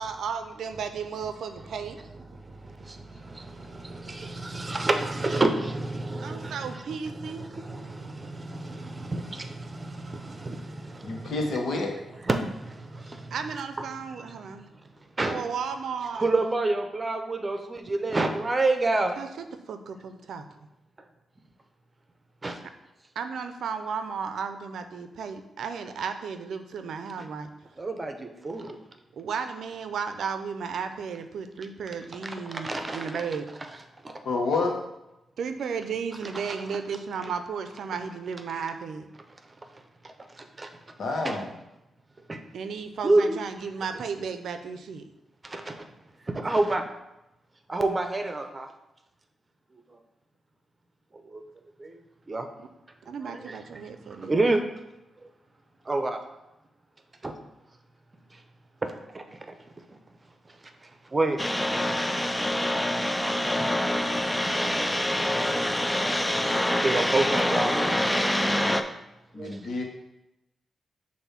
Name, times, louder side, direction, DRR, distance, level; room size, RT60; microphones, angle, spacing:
voice 1, 0.0-2.0 6.2-7.4 13.3-14.6 15.2-16.3 19.2-20.4 23.2-27.5 29.1-33.5 35.4-39.1 42.5-45.1 53.1-54.4, right 6 dB, 75° right, 8 dB, 0.5 m, -34 dB
voice 2, 2.3-11.6 12.1-13.3 14.2-14.8 15.2-15.5 16.1-19.2 22.4-22.6 27.8-28.8 32.2-33.2 34.0-34.2 36.3-36.8 37.2-37.3 40.0-40.7 41.2-41.4 42.3-42.4 43.0-43.4 45.4-45.9 46.2-46.9 47.7-48.7 51.2-51.4 51.8-52.0 52.3-52.5 53.2-53.6 54.1-54.6 55.8-56.2 57.2-57.4 58.3-58.4 58.8-59.5 60.5-60.6 60.8-61.4 63.1-64.1 66.8-68.9 69.3-69.8, right 2 dB, 30° right, 6 dB, 0.8 m, -29 dB
voice 3, 11.0-11.9 34.2-34.8 41.0-41.5 69.3-69.8, left 3 dB, 70° left, 2 dB, 1.2 m, -28 dB
sound 1, 61.4-68.8, left 1 dB, 10° left, 0.4 m, -25 dB
6.8 x 2.7 x 5.7 m, 0.92 s
cardioid pair, 70°, 0 cm